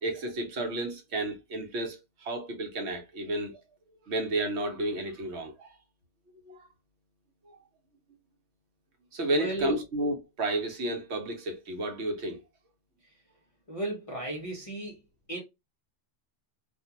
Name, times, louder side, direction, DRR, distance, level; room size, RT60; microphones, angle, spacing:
voice 1, 0.0-3.6 4.0-5.8 6.5-6.7 7.5-7.6 9.1-12.4, right 1 dB, 70° right, 1.1 m, -32 dB
voice 2, 9.3-9.8 13.7-15.0 15.3-15.4, right 1 dB, 35° left, 0.7 m, -34 dB
2.5 x 2.3 x 2.7 m
omnidirectional pair, 1.2 m